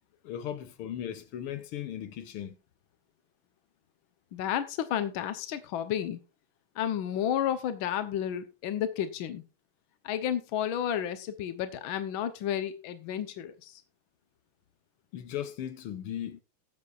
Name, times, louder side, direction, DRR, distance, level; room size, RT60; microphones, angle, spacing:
voice 1, 0.2-2.6 15.1-16.4, left 10 dB, 85° left, 1.9 m, -37 dB
voice 2, 4.3-6.2 6.8-9.4 10.0-13.8, left 10 dB, 70° left, 1.7 m, -31 dB
19.0 x 7.5 x 2.5 m
omnidirectional pair, 2.4 m